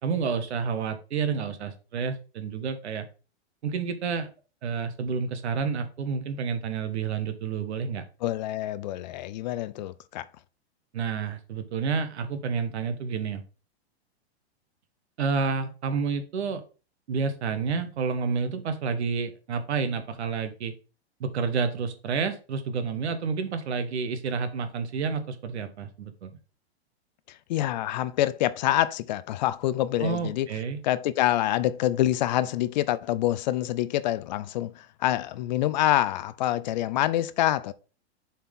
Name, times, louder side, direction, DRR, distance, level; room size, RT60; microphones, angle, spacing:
voice 1, 0.0-3.0 3.6-4.3 4.6-8.0 10.9-13.4 15.2-16.6 17.1-20.7 21.2-26.3 30.0-30.8, right 5 dB, 80° right, 1.4 m, -29 dB
voice 2, 8.2-10.3 27.5-30.5 30.8-37.7, left 13 dB, 45° left, 0.4 m, -26 dB
7.1 x 4.3 x 3.6 m
hypercardioid pair, 145°, 33 cm